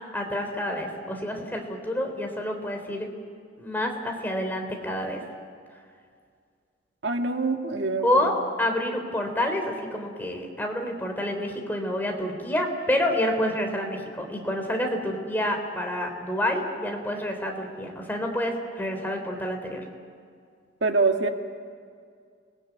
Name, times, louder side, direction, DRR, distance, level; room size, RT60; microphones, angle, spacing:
voice 1, 0.1-3.1 3.6-5.2 8.0-8.3 8.6-9.6 9.9-19.8, left 1 dB, 10° left, 2 dB, 3.7 m, -28 dB
voice 2, 7.0-8.3 20.8-21.3, right 3 dB, 75° right, 4 dB, 2.0 m, -25 dB
30.0 x 20.5 x 9.6 m, 2.2 s
head